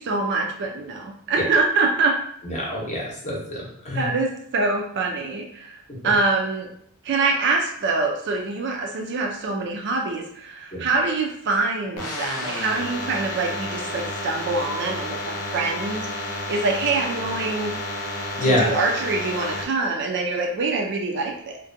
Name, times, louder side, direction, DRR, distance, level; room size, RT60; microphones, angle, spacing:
voice 1, 0.0-2.1 3.9-6.7 7.0-17.7 18.4-21.6, right 3 dB, 50° right, 2 dB, 0.4 m, -25 dB
voice 2, 2.4-4.1 10.7-10.8 18.4-18.6, left 1 dB, 30° left, -4 dB, 0.7 m, -26 dB
sound 1, 12.0-19.6, left 1 dB, 90° left, 0.6 m, -31 dB
2.6 x 2.1 x 2.5 m, 0.68 s
head